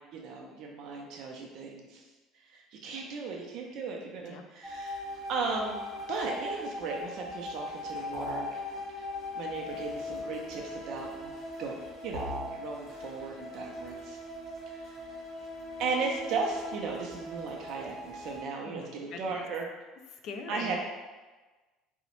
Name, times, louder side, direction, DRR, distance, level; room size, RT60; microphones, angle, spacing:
voice 1, 0.0-2.0 2.5-5.8 6.1-8.5 9.3-11.3 11.6-12.3 12.6-14.2 14.7-15.0 15.8-19.7 20.5-20.8, right 4 dB, 50° right, 0 dB, 0.3 m, -36 dB
sound 1, 4.6-18.4, left 2 dB, 15° left, 1.1 m, -40 dB
sound 2, 8.1-8.6 12.1-12.6, right 1 dB, 80° right, 0.7 m, -36 dB
voice 2, 18.6-19.4 20.1-20.8, left 5 dB, 45° left, 4 dB, 0.3 m, -43 dB
3.7 x 2.0 x 2.9 m, 1.2 s
cardioid pair, 175°, 0 cm